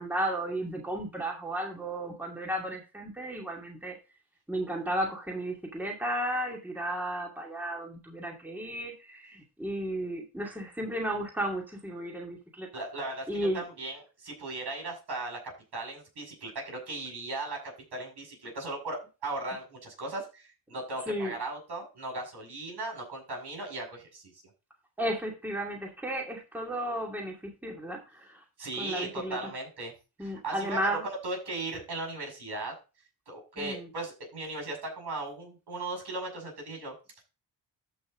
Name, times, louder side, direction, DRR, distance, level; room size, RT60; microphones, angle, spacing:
voice 1, 0.0-4.0 4.5-12.7 13.3-13.6 21.1-21.3 25.0-28.4 28.7-29.5 30.2-31.0 33.6-33.9, right 1 dB, 5° right, 0 dB, 2.4 m, -34 dB
voice 2, 12.7-24.2 28.6-29.9 30.2-32.8 33.3-37.2, right 2 dB, 65° right, 1 dB, 6.5 m, -37 dB
13.5 x 5.9 x 3.8 m, 0.31 s
cardioid pair, 90°, 43 cm